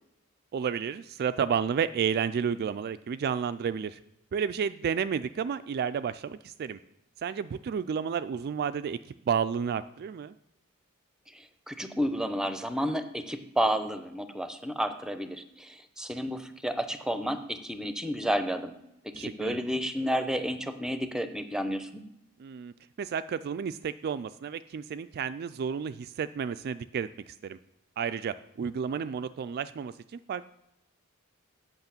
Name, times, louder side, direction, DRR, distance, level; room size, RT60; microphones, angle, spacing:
voice 1, 0.5-4.0 4.3-6.8 7.2-9.0 9.3-10.3 19.1-19.6 22.4-27.6 28.0-30.4, right 7 dB, 45° right, 13 dB, 0.3 m, -31 dB
voice 2, 11.3-18.7 19.2-22.0, equal, 5° right, 9 dB, 0.7 m, -31 dB
8.0 x 5.9 x 7.1 m, 0.85 s
head